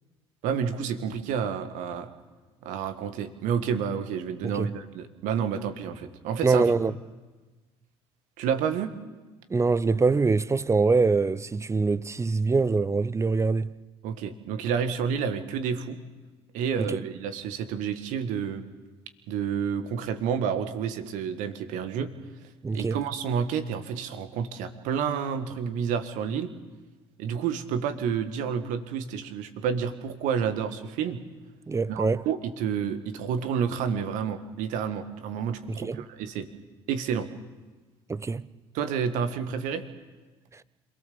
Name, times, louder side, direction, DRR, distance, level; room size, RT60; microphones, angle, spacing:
voice 1, 0.4-2.1 2.6-6.6 8.4-8.9 14.0-16.0 16.5-18.6 19.3-22.1 22.7-26.5 27.2-31.2 31.9-36.5 36.9-37.3 38.7-39.8, right 7 dB, 65° right, 1.6 m, -29 dB
voice 2, 6.4-6.9 9.5-13.7 16.9-17.0 22.6-23.0 31.7-32.2 35.7-36.0 38.1-38.5, right 4 dB, 20° right, 0.7 m, -24 dB
27.0 x 17.5 x 7.0 m
hypercardioid pair, 55°, 14 cm